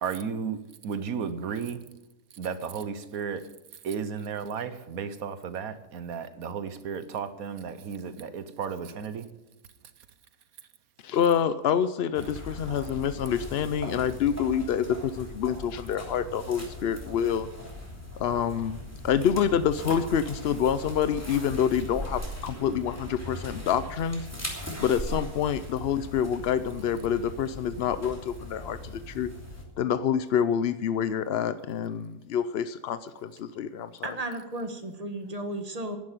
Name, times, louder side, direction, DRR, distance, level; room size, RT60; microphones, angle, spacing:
voice 1, 0.0-0.6 0.8-1.8 2.4-3.4 3.8-9.3, right 6 dB, 65° right, 12 dB, 1.3 m, -33 dB
voice 2, 11.0-17.5 18.2-18.8 19.0-24.3 24.5-29.3 29.8-33.9, left 8 dB, 70° left, 13 dB, 0.6 m, -27 dB
sound 1, 12.1-29.6, left 1 dB, 10° left, 3.0 m, -39 dB
voice 3, 34.0-36.0, right 1 dB, 25° right, 6 dB, 1.5 m, -34 dB
11.0 x 10.5 x 9.1 m, 1.0 s
omnidirectional pair, 1.7 m